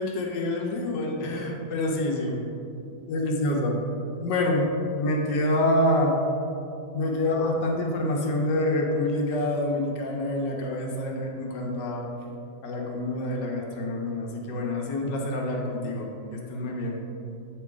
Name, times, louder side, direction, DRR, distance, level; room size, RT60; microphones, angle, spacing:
voice 1, 0.0-2.4 2.9-3.8 4.2-6.2 6.9-12.1 12.6-17.0, left 1 dB, 85° left, 0 dB, 1.5 m, -27 dB
8.1 x 3.0 x 4.7 m, 2.6 s
omnidirectional pair, 1.8 m